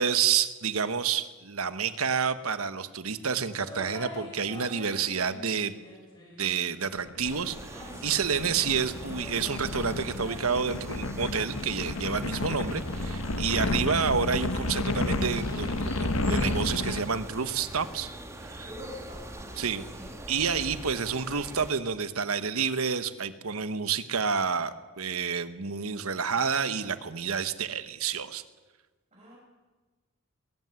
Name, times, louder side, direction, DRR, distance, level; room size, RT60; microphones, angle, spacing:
voice 1, 0.0-5.7 6.4-18.1 18.4-18.6 19.6-19.8 20.3-28.4, right 6 dB, 85° right, 12 dB, 1.2 m, -29 dB
sound 1, 3.5-6.8 7.7-10.4, left 1 dB, 20° left, 6.7 m, -45 dB
sound 2, 7.0-17.0, left 2 dB, 75° left, 1.4 m, -31 dB
sound 3, 7.2-21.7, right 1 dB, 15° right, 1.9 m, -43 dB
voice 2, 8.2-8.6 18.6-20.2 29.1-29.4, left 1 dB, 35° right, -5 dB, 6.5 m, -46 dB
21.0 x 15.5 x 9.5 m, 1.3 s
head